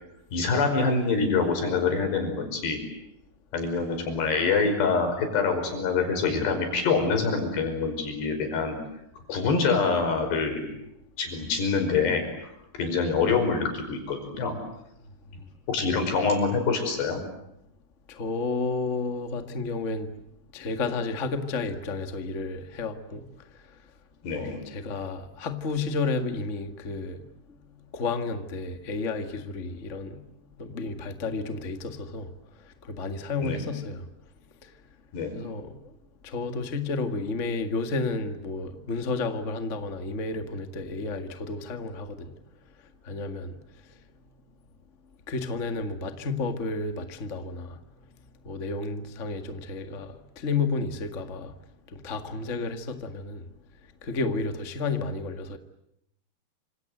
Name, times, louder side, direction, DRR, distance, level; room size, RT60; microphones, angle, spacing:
voice 1, 0.3-2.8 3.5-8.8 9.3-10.7 11.2-12.3 12.8-14.5 15.7-17.2 24.2-24.6 33.4-33.6 35.1-35.4, left 4 dB, 85° left, 7.3 m, -25 dB
voice 2, 18.1-20.1 20.5-23.2 24.3-27.3 27.9-30.2 30.6-32.3 32.8-34.1 35.3-35.9 36.2-42.3 43.0-43.6 45.3-47.8 48.4-51.5 51.9-53.4 54.0-55.6, left 3 dB, 45° left, 0.9 m, -31 dB
28.0 x 26.5 x 8.0 m
omnidirectional pair, 4.7 m